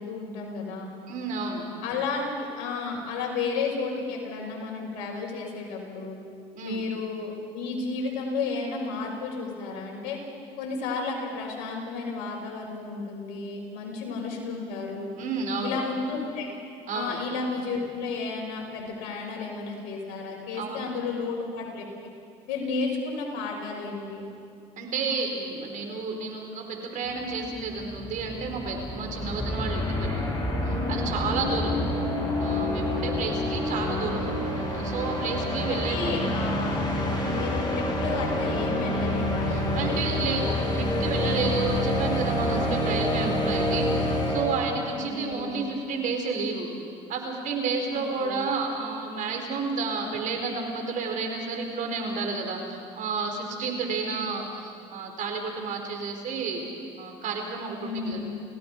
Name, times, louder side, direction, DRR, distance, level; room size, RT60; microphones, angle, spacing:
voice 1, 0.0-0.9 1.8-6.2 6.6-10.2 10.6-15.1 15.6-16.5 16.9-21.8 22.5-24.3 35.7-36.8 37.2-41.7 44.9-45.7 47.9-48.4 57.8-58.2, left 4 dB, 75° left, -1 dB, 6.1 m, -32 dB
voice 2, 1.1-1.7 6.5-6.8 15.2-15.8 16.9-17.2 20.6-20.9 24.8-30.4 30.7-31.7 32.4-36.1 39.5-46.7 47.1-56.7 57.0-58.2, right 4 dB, 60° right, 3 dB, 4.5 m, -31 dB
sound 1, 27.2-27.3 27.5-44.9, left 1 dB, 30° left, 7.9 m, -28 dB
30.0 x 17.0 x 5.6 m, 2.3 s
supercardioid pair, 70°, 15 cm